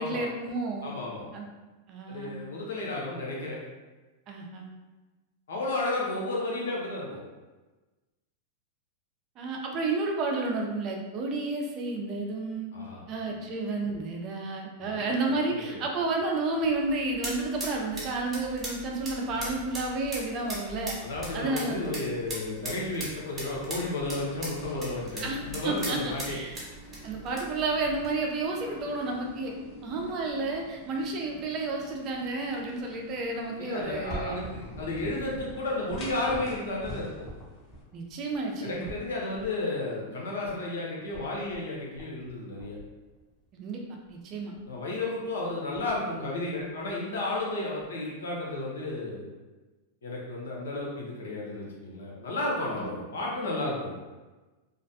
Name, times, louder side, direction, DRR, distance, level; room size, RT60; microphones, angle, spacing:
voice 1, 0.0-0.9 1.3-1.5 1.9-2.4 4.3-4.7 9.4-12.7 13.1-21.0 21.3-22.0 25.2-26.6 27.0-29.5 29.8-34.5 37.9-38.9 43.5-43.8 44.1-44.5 52.7-52.9, right 3 dB, 40° right, 0 dB, 0.5 m, -31 dB
voice 2, 0.8-1.3 2.1-3.6 5.5-7.2 12.7-13.0 13.4-13.5 14.8-15.1 15.5-15.8 21.0-26.4 33.6-37.3 38.6-42.8 44.6-49.3 50.0-53.9, left 2 dB, 85° left, -3 dB, 0.7 m, -33 dB
sound 1, 16.5-28.1, right 1 dB, 20° right, 1.0 m, -40 dB
sound 2, 23.9-37.8, left 1 dB, 35° left, 0.6 m, -48 dB
sound 3, 33.9-39.5 40.4-40.5 40.8-40.9 41.1-41.6 41.9-42.3 42.6-43.5 44.0-44.1 44.5-44.8 45.2-45.3 45.5-46.1 46.6-47.4 47.8-47.9 48.7-48.8, equal, 15° left, 1.0 m, -43 dB
2.4 x 2.1 x 2.6 m, 1.2 s
hypercardioid pair, 120°, 0 cm